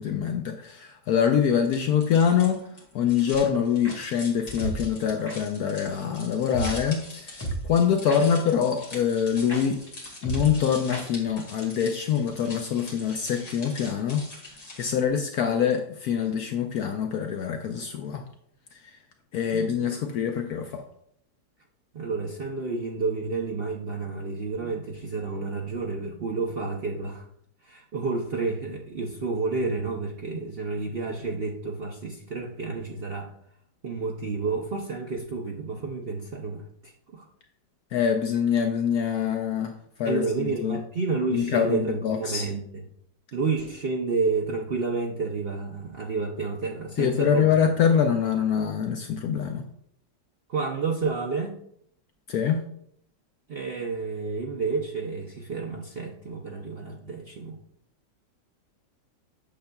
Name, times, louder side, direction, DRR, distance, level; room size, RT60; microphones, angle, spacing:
voice 1, 0.0-2.7 2.9-7.4 7.6-9.8 10.2-14.2 14.8-18.2 19.3-20.8 37.9-39.7 40.0-40.8 41.3-42.5 47.0-49.6 52.3-52.6, left 7 dB, 70° left, 5 dB, 1.0 m, -24 dB
sound 1, 1.6-15.1, left 2 dB, 50° left, 2.2 m, -44 dB
sound 2, 3.8-4.0 4.6-4.8 5.3-5.4 6.5-6.8 7.4-8.5 8.8-8.9 9.2-9.3 9.5-9.6 9.9-10.0 10.2-10.6 10.9-11.0 11.3-11.4 11.6-11.7, right 2 dB, 15° left, 1.5 m, -32 dB
voice 2, 19.4-20.0 21.9-27.3 27.6-33.3 33.8-37.3 40.0-42.6 43.3-47.5 50.5-51.6 53.5-57.6, right 4 dB, 70° right, 0 dB, 0.5 m, -30 dB
8.6 x 6.6 x 2.3 m, 0.69 s
omnidirectional pair, 1.9 m